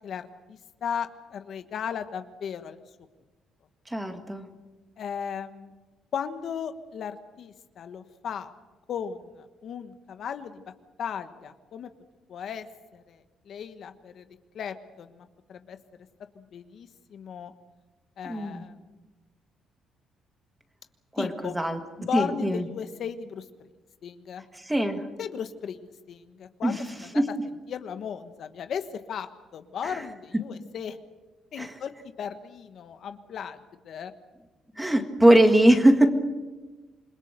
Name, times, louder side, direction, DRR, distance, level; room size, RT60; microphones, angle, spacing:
voice 1, 0.0-2.8 5.0-5.7 6.1-8.5 8.9-10.7 11.0-11.9 12.3-12.7 12.9-14.3 14.5-15.8 16.3-17.5 18.2-18.8 21.2-21.5 22.0-23.5 24.0-24.4 25.2-25.8 26.1-26.8 27.7-31.0 31.5-31.9 32.2-33.6 33.8-34.1, left 7 dB, 55° left, 9 dB, 1.2 m, -36 dB
voice 2, 3.9-4.5 18.3-18.6 21.1-21.3 21.5-21.8 22.1-22.6 24.5-25.0 26.6-26.8 27.2-27.3 29.8-30.0 31.6-31.7 34.8-36.1, right 1 dB, 5° right, 6 dB, 1.9 m, -21 dB
27.5 x 22.0 x 6.7 m, 1.2 s
cardioid pair, 145°, 0 cm